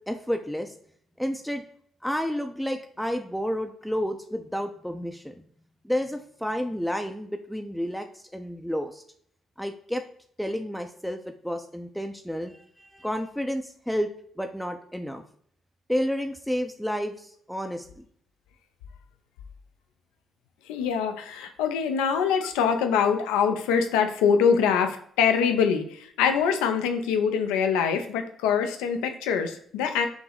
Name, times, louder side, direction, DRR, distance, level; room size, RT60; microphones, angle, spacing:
voice 1, 0.1-0.7 1.2-1.6 2.0-5.4 5.8-9.0 9.6-10.0 10.4-14.1 14.4-15.2 15.9-18.0, equal, 5° left, 5 dB, 0.5 m, -30 dB
voice 2, 20.7-30.1, left 7 dB, 90° left, 6 dB, 0.5 m, -24 dB
5.9 x 2.0 x 3.8 m, 0.62 s
supercardioid pair, 60°, 0 cm